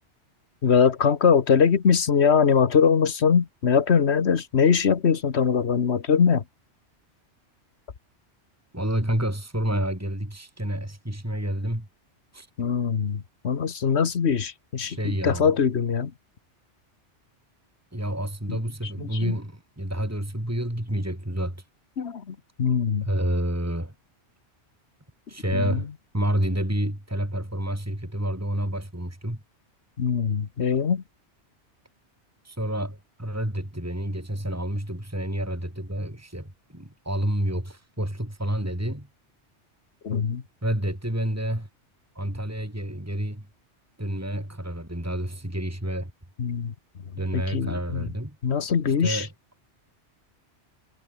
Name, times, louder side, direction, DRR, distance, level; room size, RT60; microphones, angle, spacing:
voice 1, 0.6-6.4 12.6-16.1 18.5-18.6 19.0-19.4 22.0-23.1 25.5-25.8 30.0-31.0 40.0-40.4 46.4-46.7 47.3-48.1 48.4-49.3, left 6 dB, 65° left, 1.5 m, -22 dB
voice 2, 8.7-11.9 12.3-12.5 14.8-15.5 17.9-21.6 23.0-23.9 25.3-25.9 26.1-29.4 32.4-39.1 40.6-41.7 42.1-43.5 44.0-46.1 47.2-48.4 49.0-49.3, right 1 dB, 15° right, 4.3 m, -29 dB
omnidirectional pair, 1.2 m